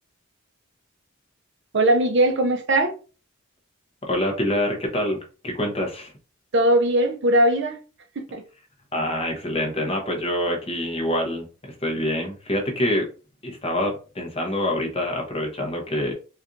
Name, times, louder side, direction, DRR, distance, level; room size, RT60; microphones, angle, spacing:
voice 1, 1.7-3.0 6.5-7.8 8.2-8.4, right 1 dB, 55° right, 0.6 m, -20 dB
voice 2, 4.0-5.2 5.4-6.1 8.9-13.1 13.4-16.1, left 1 dB, 25° left, 0.9 m, -26 dB
4.3 x 2.4 x 2.6 m
head